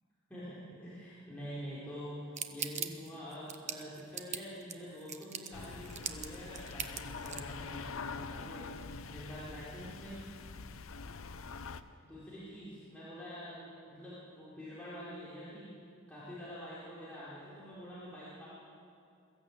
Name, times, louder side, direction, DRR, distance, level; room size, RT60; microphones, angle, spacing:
voice 1, 0.3-10.3 12.0-15.7 16.1-18.5, equal, 5° left, -11 dB, 4.6 m, -46 dB
sound 1, 2.4-7.5, right 8 dB, 35° right, 1.0 m, -40 dB
sound 2, 5.5-11.8, left 4 dB, 80° left, 0.8 m, -44 dB
22.5 x 14.5 x 8.7 m, 2.5 s
head